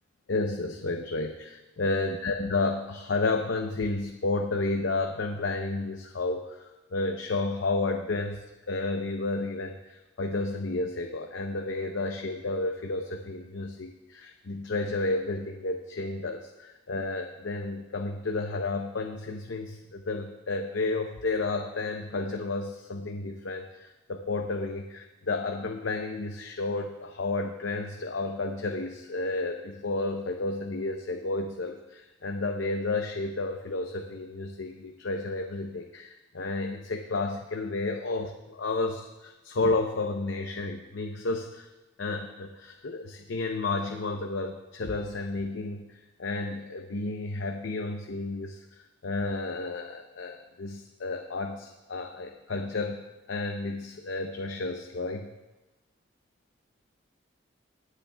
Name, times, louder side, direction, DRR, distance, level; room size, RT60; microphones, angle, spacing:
voice 1, 0.3-6.6 6.9-41.7 42.0-48.6 49.0-55.3, left 3 dB, 75° left, 4 dB, 0.6 m, -31 dB
24.5 x 8.2 x 2.2 m, 1.1 s
head